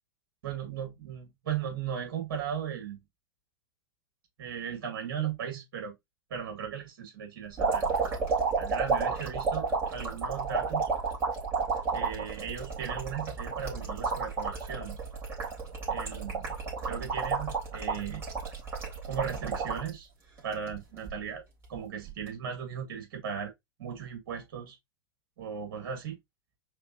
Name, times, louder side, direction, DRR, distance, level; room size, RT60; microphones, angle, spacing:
voice 1, 0.4-3.0 4.4-6.0 6.3-7.9 8.6-10.9 11.9-15.0 15.9-16.5 16.8-18.2 19.1-20.1 20.4-21.4 21.7-23.5 23.8-24.8 25.4-26.2, right 8 dB, 60° right, 2.1 m, -37 dB
sound 1, 7.6-19.9 20.4-21.1 22.1-22.3, right 4 dB, 20° right, 3.4 m, -31 dB
5.0 x 3.6 x 2.8 m
hypercardioid pair, 100°, 12 cm